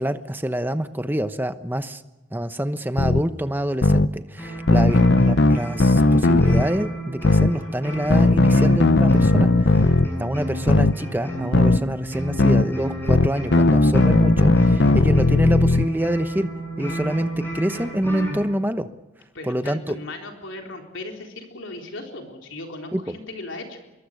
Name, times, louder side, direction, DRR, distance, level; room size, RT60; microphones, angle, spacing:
voice 1, 0.0-2.0 2.3-9.9 10.2-16.5 16.8-18.9 19.4-19.9 22.9-23.1, right 1 dB, 10° right, 10 dB, 1.0 m, -26 dB
sound 1, 3.0-3.2 3.8-4.1 4.7-6.7 7.2-7.5 8.1-10.1 10.7-10.9 11.5-11.8 12.4-12.6 13.1-15.9, left 2 dB, 55° left, 0.7 m, -17 dB
sound 2, 4.4-18.5, right 1 dB, 10° left, 7.9 m, -32 dB
voice 2, 19.3-23.8, left 2 dB, 70° left, 3 dB, 3.9 m, -37 dB
25.5 x 22.5 x 6.7 m, 1.1 s
head